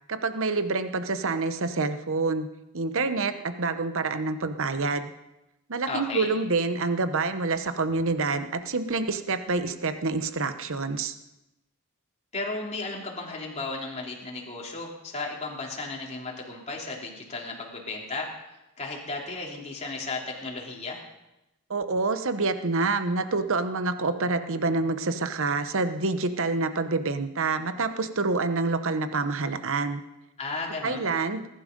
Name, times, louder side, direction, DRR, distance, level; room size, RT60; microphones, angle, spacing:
voice 1, 0.1-2.5 2.7-5.1 5.7-11.1 21.7-30.0 30.8-31.5, right 3 dB, 65° right, 10 dB, 1.0 m, -27 dB
voice 2, 5.9-6.3 12.3-18.3 18.8-21.0 30.4-31.1, left 3 dB, 30° left, -2 dB, 3.1 m, -34 dB
20.0 x 11.5 x 5.3 m, 0.93 s
head